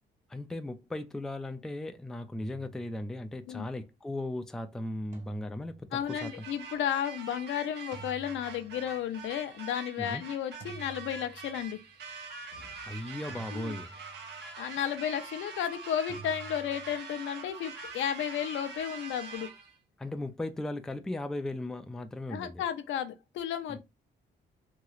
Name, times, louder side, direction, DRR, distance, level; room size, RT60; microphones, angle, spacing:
voice 1, 0.3-6.4 10.0-10.2 12.8-14.0 20.0-22.6 23.7-23.8, left 1 dB, 5° left, 0.3 m, -37 dB
sound 1, 2.4-3.4 5.1-6.3 7.9-9.1 10.6-11.8 13.3-14.4 16.1-17.0, right 5 dB, 40° right, 1.4 m, -49 dB
voice 2, 5.9-11.8 12.5-12.7 13.5-13.8 14.3-19.5 22.3-23.8, left 9 dB, 75° left, 0.5 m, -33 dB
sound 2, 6.1-19.8, right 5 dB, 60° right, 0.9 m, -45 dB
3.0 x 2.7 x 2.4 m
cardioid pair, 90°, 20 cm